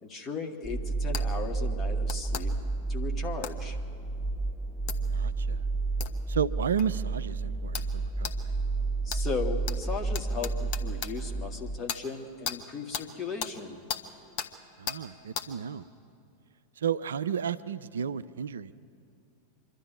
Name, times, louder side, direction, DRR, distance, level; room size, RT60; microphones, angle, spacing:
voice 1, 0.0-2.5 2.9-3.8 9.0-13.8, left 5 dB, 25° left, 3 dB, 1.9 m, -37 dB
sound 1, 0.6-11.8, right 3 dB, 10° right, 0.4 m, -31 dB
sound 2, 1.1-1.3 2.1-2.5 3.4-3.6 4.9-5.0 6.0-6.1 6.8-6.9 7.7-7.9 8.2-8.4 9.1-9.2 9.7-9.8 10.1-11.1 11.9-12.0 12.5-12.6 12.9-13.1 13.4-13.5 13.9-14.0 14.4-14.5 14.9-15.0 15.4-15.5, left 8 dB, 45° left, 1.1 m, -35 dB
voice 2, 5.1-5.6 6.3-8.5 14.8-15.8 16.8-18.7, right 8 dB, 65° right, 15 dB, 0.4 m, -32 dB
25.0 x 11.5 x 9.5 m, 2.4 s
figure-of-eight pair, 90°, 0 cm